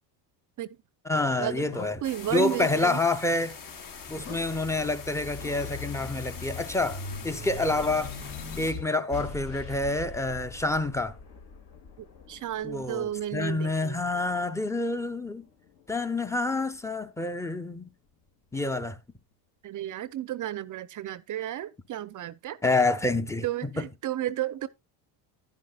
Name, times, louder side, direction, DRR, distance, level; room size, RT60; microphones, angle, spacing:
voice 1, 1.0-2.0 2.3-3.6 4.1-8.1 8.6-11.2 12.6-15.4 15.9-17.9 18.5-19.0 22.6-23.9, left 2 dB, 5° left, 0.7 m, -28 dB
sound 1, 1.2-7.5, left 6 dB, 85° left, 2.0 m, -49 dB
sound 2, 2.0-8.7, left 6 dB, 45° left, 1.4 m, -43 dB
voice 2, 2.0-3.0 12.0-14.0 19.6-22.6 23.4-24.7, right 12 dB, 40° right, 0.6 m, -33 dB
sound 3, 3.5-14.3 14.8-16.0, left 3 dB, 60° left, 2.4 m, -42 dB
11.0 x 10.5 x 2.3 m
supercardioid pair, 90°, 47 cm